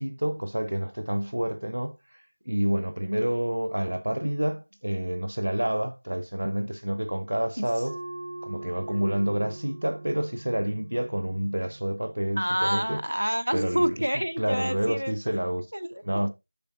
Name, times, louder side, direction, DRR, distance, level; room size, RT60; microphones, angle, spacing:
voice 1, 0.0-2.0 2.5-8.0 8.4-13.0 13.5-14.0 14.4-15.7 16.0-16.3, right 1 dB, 50° right, 0.8 m, -28 dB
sound 1, 7.9-13.0, right 2 dB, 10° right, 0.3 m, -42 dB
voice 2, 12.4-15.1 15.7-16.0, equal, 90° right, 0.7 m, -28 dB
8.6 x 6.8 x 2.4 m
figure-of-eight pair, 175°, 0 cm